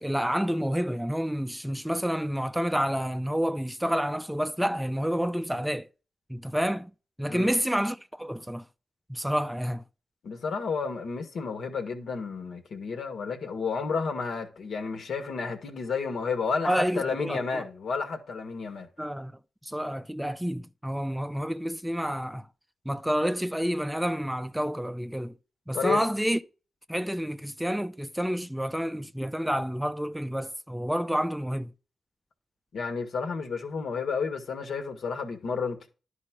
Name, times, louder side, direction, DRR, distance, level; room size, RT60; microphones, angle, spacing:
voice 1, 0.0-5.9 6.3-6.9 7.2-8.6 9.1-9.8 16.6-17.6 19.0-19.3 19.6-22.5 22.9-25.3 25.7-26.4 26.9-31.7, equal, 5° right, 0.5 m, -29 dB
voice 2, 10.2-18.9 25.7-26.0 32.7-35.9, left 5 dB, 70° left, 1.8 m, -31 dB
11.0 x 4.3 x 6.1 m
supercardioid pair, 55°, 0 cm